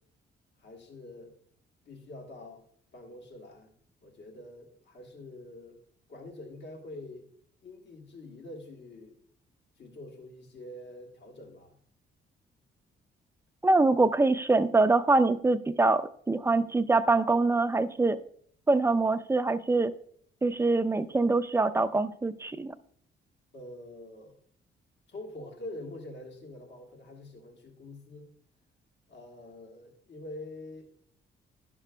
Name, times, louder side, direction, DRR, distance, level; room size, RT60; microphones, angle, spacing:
voice 1, 0.6-1.3 1.8-2.6 2.9-3.7 4.0-5.8 6.1-7.3 7.6-9.2 9.8-11.8 23.5-24.4 25.1-28.3 29.1-30.9, left 1 dB, 65° left, 2 dB, 1.4 m, -45 dB
voice 2, 13.6-18.2 18.7-19.9 20.4-22.7, right 3 dB, 15° right, 11 dB, 0.4 m, -24 dB
11.5 x 5.9 x 2.2 m, 0.62 s
cardioid pair, 90°, 20 cm